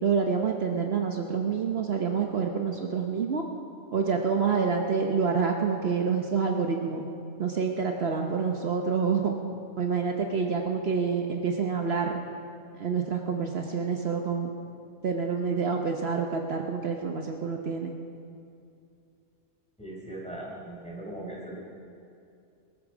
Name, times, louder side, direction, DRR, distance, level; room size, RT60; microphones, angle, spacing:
voice 1, 0.0-3.4 3.9-7.1 7.4-9.3 9.8-12.2 12.8-14.5 15.0-17.9, right 5 dB, 60° right, 3 dB, 1.1 m, -27 dB
voice 2, 19.8-21.6, right 1 dB, 5° left, -5 dB, 4.5 m, -39 dB
21.5 x 13.5 x 5.0 m, 2.5 s
omnidirectional pair, 1.2 m